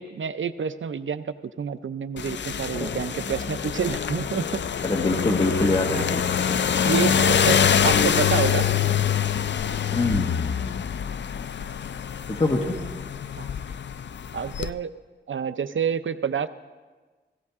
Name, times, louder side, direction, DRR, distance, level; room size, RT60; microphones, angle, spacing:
voice 1, 0.0-4.6 5.9-6.1 6.8-7.6 7.8-8.7 13.4-13.5 14.3-14.9 15.3-16.5, right 7 dB, 80° right, 12 dB, 0.5 m, -28 dB
sound 1, 2.2-14.7, left 8 dB, 65° left, 0.4 m, -25 dB
voice 2, 4.8-6.2 6.5-6.6 9.9-10.3 12.3-12.7, left 2 dB, 30° left, -1 dB, 1.5 m, -24 dB
16.5 x 16.0 x 3.6 m, 1.3 s
wide cardioid pair, 95°, 20 cm